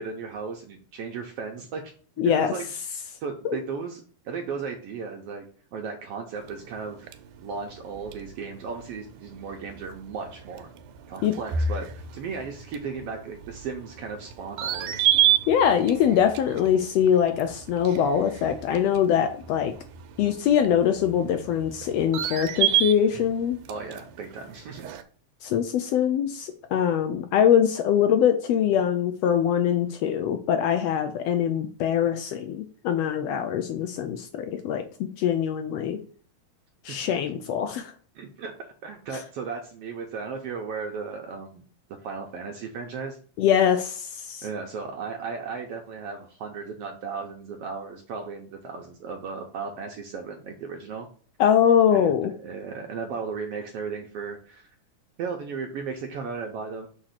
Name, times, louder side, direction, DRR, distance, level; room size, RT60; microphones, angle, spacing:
voice 1, 0.0-1.8 2.2-2.7 3.2-5.4 5.7-7.1 7.4-10.7 11.1-15.1 23.7-24.9 36.9-37.1 38.1-38.5 38.8-41.6 42.0-43.2 44.4-51.1 51.9-54.7 55.2-56.9, right 5 dB, 70° right, 3 dB, 1.5 m, -35 dB
voice 2, 2.2-2.5 3.4-3.6 11.2-11.3 15.5-19.7 20.2-23.6 25.4-36.0 36.8-37.9 43.4-44.5 51.4-52.3, left 9 dB, 80° left, 7 dB, 1.5 m, -23 dB
sound 1, 6.4-25.0, right 10 dB, 90° right, 2.2 m, -31 dB
6.5 x 3.0 x 5.7 m, 0.44 s
omnidirectional pair, 3.5 m